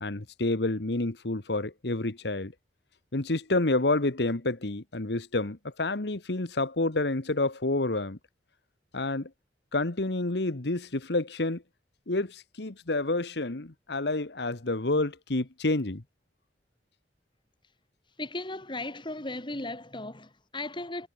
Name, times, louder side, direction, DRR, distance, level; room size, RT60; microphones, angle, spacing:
voice 1, 0.0-2.5 3.1-8.2 8.9-9.3 9.7-11.6 12.1-16.0, left 2 dB, 65° left, 1.5 m, -29 dB
voice 2, 18.2-21.1, left 2 dB, 25° left, 3.6 m, -36 dB
head